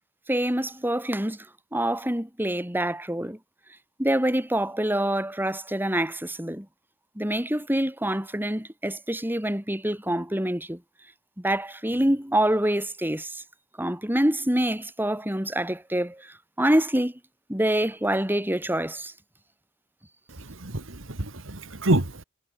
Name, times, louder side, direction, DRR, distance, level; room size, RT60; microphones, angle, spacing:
voice 1, 0.3-1.5 1.7-3.4 4.0-6.7 7.2-10.8 11.4-13.4 13.8-17.2 17.5-19.1, right 1 dB, 10° right, 4.0 m, -26 dB
voice 2, 20.4-22.2, right 1 dB, 70° right, 2.2 m, -27 dB
head